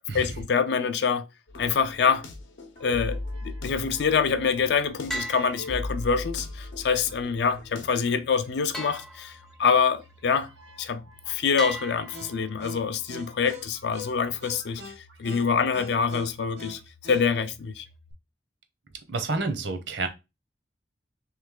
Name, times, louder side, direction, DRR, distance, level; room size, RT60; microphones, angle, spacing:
voice 1, 0.1-1.3 1.5-2.2 2.8-10.5 10.8-17.9, left 6 dB, 65° left, 0.4 m, -26 dB
sound 1, 1.5-7.8, left 2 dB, 85° left, 0.8 m, -38 dB
sound 2, 2.8-18.1, left 2 dB, 90° right, 1.2 m, -47 dB
sound 3, 5.1-6.3 8.7-9.8 11.6-12.8, equal, ahead, 0.4 m, -37 dB
voice 2, 19.1-20.1, right 3 dB, 70° right, 0.8 m, -29 dB
3.2 x 3.1 x 3.7 m
head